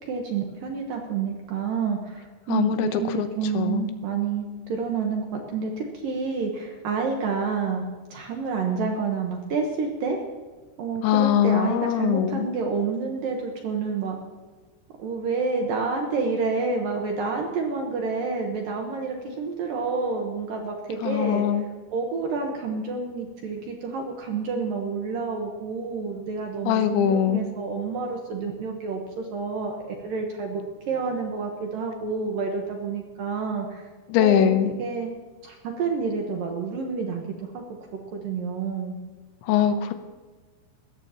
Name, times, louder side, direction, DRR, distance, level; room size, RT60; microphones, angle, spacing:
voice 1, 0.0-7.9 8.1-10.2 10.8-14.2 15.0-21.5 21.9-30.6 30.9-33.9 34.2-34.5 34.8-35.1 35.4-37.2 37.5-37.6 37.9-38.9, right 4 dB, 70° right, 1 dB, 2.3 m, -29 dB
voice 2, 2.5-3.3 3.5-3.9 11.0-12.5 21.0-21.7 26.7-27.4 34.1-34.7 39.4-39.9, left 10 dB, 80° left, 9 dB, 3.1 m, -22 dB
21.0 x 16.0 x 2.9 m, 1.4 s
omnidirectional pair, 5.3 m